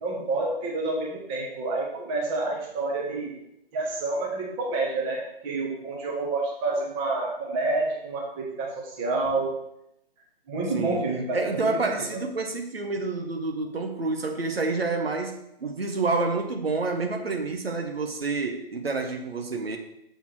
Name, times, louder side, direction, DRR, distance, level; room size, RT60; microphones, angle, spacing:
voice 1, 0.0-3.3 3.7-9.5 10.5-11.5 11.8-12.2, right 3 dB, 15° right, -2 dB, 1.3 m, -28 dB
voice 2, 10.7-11.0 11.3-19.8, right 3 dB, 80° right, 4 dB, 1.2 m, -28 dB
7.0 x 3.6 x 6.0 m, 0.78 s
figure-of-eight pair, 145°, 30 cm